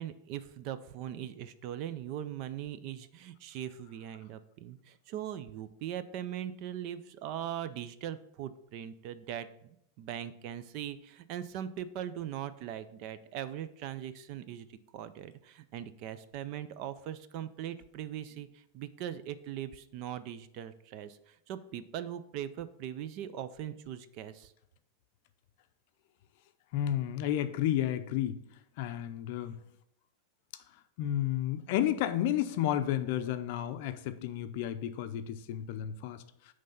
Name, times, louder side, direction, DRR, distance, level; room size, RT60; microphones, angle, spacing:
voice 1, 0.0-14.7 14.9-24.5, right 10 dB, 40° right, 13 dB, 0.4 m, -40 dB
voice 2, 26.7-28.4 28.8-29.5 31.0-36.2, left 11 dB, 50° left, 10 dB, 0.5 m, -31 dB
9.1 x 3.3 x 5.4 m, 0.77 s
supercardioid pair, 170°, 0 cm